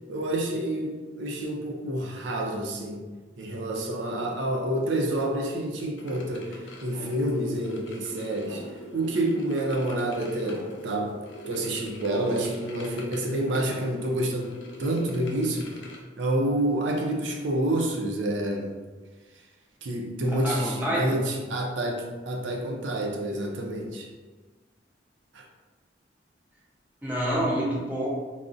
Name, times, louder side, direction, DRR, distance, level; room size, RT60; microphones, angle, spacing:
voice 1, 0.1-3.0 3.4-8.6 8.9-11.1 11.5-14.5 14.8-15.8 16.2-18.7 19.8-24.1 25.3-25.4, right 1 dB, 85° right, 1 dB, 0.4 m, -28 dB
sound 1, 6.0-16.0, equal, 80° left, 0.5 m, -42 dB
voice 2, 20.3-21.2 27.0-28.1, equal, 10° right, -6 dB, 0.7 m, -27 dB
3.7 x 2.0 x 2.5 m, 1.3 s
head